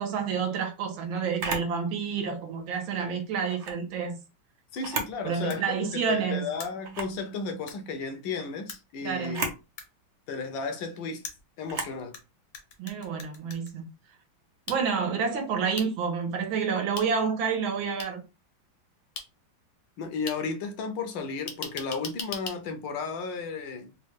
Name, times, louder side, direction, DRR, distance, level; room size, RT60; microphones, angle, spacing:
voice 1, 0.0-4.2 5.2-6.5 9.0-9.5 12.8-13.8 14.7-18.2, right 6 dB, 80° right, 1.7 m, -29 dB
Camera, 1.4-1.7 3.4-3.8 4.7-5.2 5.6-5.7 6.8-7.2 9.2-9.6 11.7-12.0, right 3 dB, 60° right, 0.7 m, -33 dB
voice 2, 4.7-9.5 10.3-11.2 11.6-12.2 20.0-23.9, left 4 dB, 75° left, 1.3 m, -34 dB
sound 1, 5.5-5.6 6.6-6.7 7.7-7.8 8.7-8.8 9.8-9.9 11.2-12.2 12.5-13.7 14.7-14.8 15.8-15.9 17.0-17.1 18.0-18.1 19.2-19.3 20.3-20.4 21.5-22.6, left 5 dB, 55° left, 0.9 m, -38 dB
4.2 x 2.3 x 3.2 m
omnidirectional pair, 2.2 m